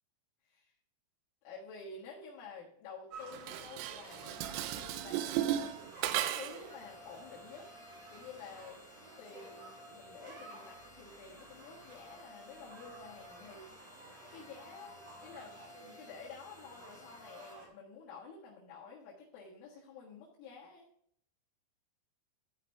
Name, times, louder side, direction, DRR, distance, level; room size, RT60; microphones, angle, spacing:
voice 1, 1.4-5.8 6.1-8.8 9.2-13.7 14.3-20.9, left 5 dB, 80° left, -5 dB, 4.1 m, -51 dB
sound 1, 3.1-17.7, right 2 dB, 45° right, 2.4 m, -54 dB
Dishes pots and pans, 3.3-6.7, right 12 dB, 80° right, 2.7 m, -35 dB
sound 2, 4.0-17.5, left 3 dB, 60° left, 2.7 m, -57 dB
13.5 x 5.0 x 3.4 m, 0.66 s
omnidirectional pair, 5.6 m